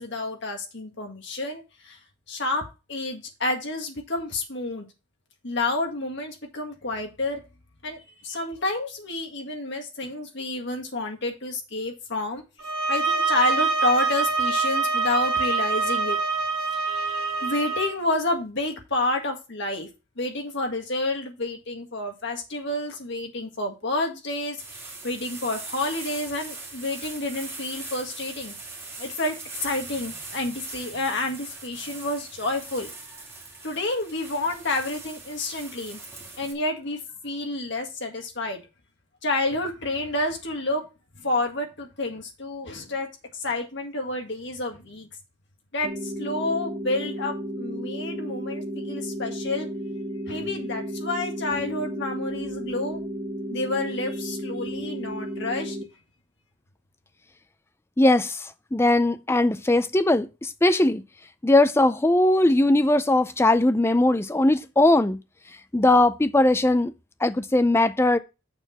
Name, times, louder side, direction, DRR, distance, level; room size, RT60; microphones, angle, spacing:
voice 1, 0.0-2.0 2.3-4.9 5.4-7.4 7.8-12.4 12.9-16.2 16.7-19.9 20.2-28.6 29.0-32.9 33.6-36.0 36.4-38.6 39.2-40.9 41.2-43.1 43.3-45.1 45.7-49.7 50.3-53.0 53.5-55.8, left 2 dB, 60° left, 1.8 m, -29 dB
sound 1, 12.6-17.9, right 4 dB, 70° right, 1.8 m, -25 dB
sound 2, 24.6-36.5, right 3 dB, 15° right, 2.5 m, -41 dB
sound 3, 45.8-55.8, equal, 30° right, 1.3 m, -33 dB
voice 2, 58.0-61.0 61.4-65.2 65.7-66.9 67.2-68.2, left 2 dB, 10° left, 0.4 m, -20 dB
6.8 x 4.5 x 5.8 m
head